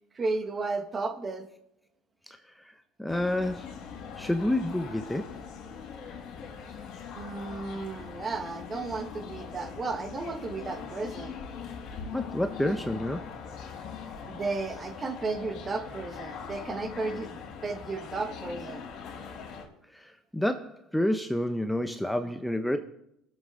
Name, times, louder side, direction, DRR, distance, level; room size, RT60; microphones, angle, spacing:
voice 1, 0.1-1.5 7.1-11.4 14.3-18.8, right 3 dB, 30° right, 8 dB, 1.3 m, -34 dB
voice 2, 3.0-3.7 4.2-5.3 12.1-13.3 19.9-22.8, left 1 dB, 5° left, 8 dB, 0.7 m, -29 dB
sound 1, 3.1-19.7, left 6 dB, 65° left, 3.4 m, -41 dB
19.0 x 7.4 x 3.8 m, 0.78 s
supercardioid pair, 100°, 0 cm